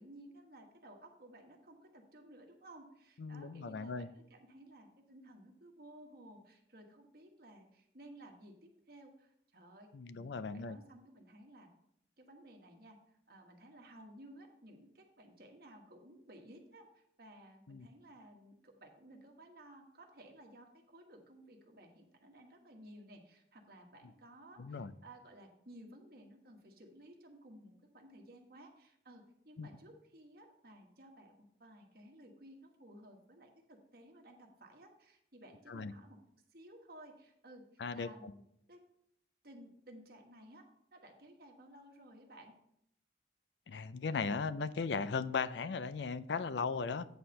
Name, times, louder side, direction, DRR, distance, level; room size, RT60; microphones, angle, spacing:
voice 1, 0.0-11.7 12.2-31.3 31.6-36.2 36.5-38.4 38.7-38.8 39.4-40.6 40.9-42.5, right 1 dB, 50° right, 3 dB, 1.3 m, -56 dB
voice 2, 3.2-4.1 9.9-10.8 17.7-17.9 24.6-24.9 29.6-29.7 35.7-35.9 37.8-38.3 43.7-47.1, left 5 dB, 70° left, 14 dB, 0.4 m, -37 dB
9.2 x 4.3 x 6.4 m, 0.75 s
head